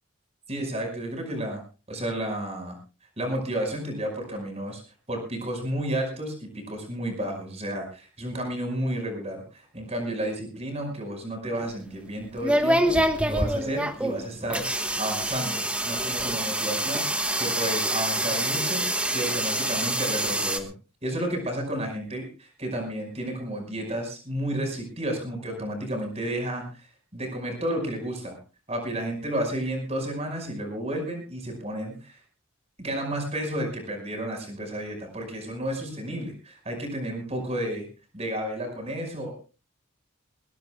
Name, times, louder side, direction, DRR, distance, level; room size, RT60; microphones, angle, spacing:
voice 1, 0.5-1.6 1.9-2.8 3.2-4.8 5.1-17.1 17.4-20.7 21.0-26.9 27.1-28.4 28.7-32.2 32.8-37.9 38.1-39.3, right 1 dB, 30° right, 4 dB, 5.3 m, -32 dB
sound 1, 11.6-20.6, right 1 dB, 5° right, 1.2 m, -26 dB
21.5 x 19.5 x 2.3 m, 0.31 s
head